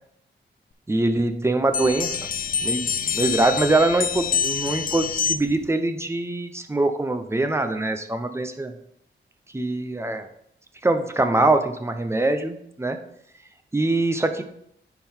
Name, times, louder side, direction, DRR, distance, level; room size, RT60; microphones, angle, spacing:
voice 1, 0.9-2.2 2.6-8.7 9.5-10.3 10.8-13.0 13.7-14.4, right 2 dB, 15° right, 7 dB, 0.7 m, -23 dB
sound 1, 1.7-5.7, left 7 dB, 45° left, 0.4 m, -26 dB
10.0 x 3.9 x 4.4 m, 0.72 s
wide cardioid pair, 130°, 20 cm